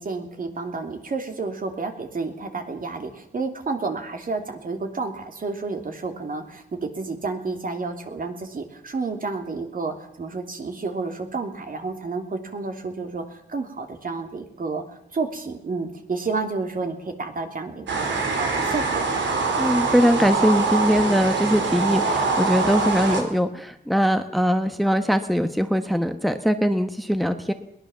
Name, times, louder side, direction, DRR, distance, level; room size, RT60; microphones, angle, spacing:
voice 1, 0.0-14.8 15.1-19.1, right 4 dB, 50° right, 5 dB, 3.1 m, -30 dB
sound 1, 17.9-23.2, right 4 dB, 90° right, 4.3 m, -24 dB
voice 2, 19.6-27.5, equal, ahead, 8 dB, 1.2 m, -21 dB
22.0 x 19.0 x 7.2 m, 0.77 s
wide cardioid pair, 120°, 19 cm